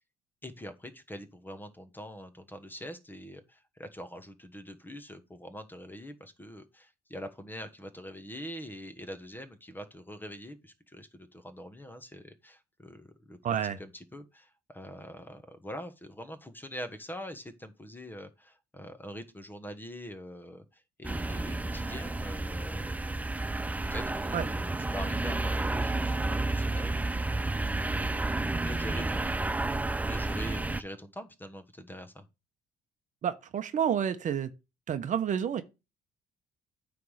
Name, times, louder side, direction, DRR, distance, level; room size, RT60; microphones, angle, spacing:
voice 1, 0.4-13.4 13.8-23.3 23.8-32.3, equal, 10° left, 1.2 m, -44 dB
voice 2, 13.4-13.8 24.3-24.5 33.2-34.5 34.9-35.6, right 8 dB, 50° right, 0.9 m, -29 dB
sound 1, 21.0-30.8, right 2 dB, 10° right, 0.4 m, -31 dB
9.3 x 3.5 x 6.4 m
cardioid pair, 110°, 17 cm